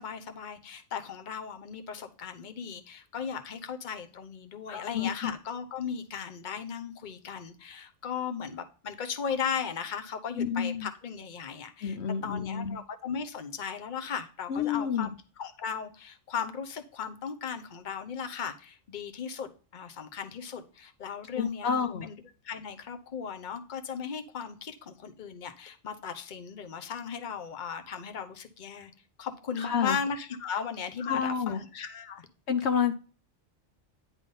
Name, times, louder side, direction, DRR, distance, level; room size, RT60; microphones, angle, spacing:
voice 1, 0.0-12.0 12.2-15.1 15.4-22.2 22.4-28.9 29.2-32.3, left 7 dB, 45° left, 1.0 m, -37 dB
voice 2, 4.7-5.3 10.4-10.9 11.8-12.8 14.5-15.1 21.3-22.1 29.6-30.0 31.0-31.6 32.5-32.9, left 7 dB, 70° left, 0.9 m, -29 dB
10.0 x 3.6 x 5.4 m
omnidirectional pair, 1.2 m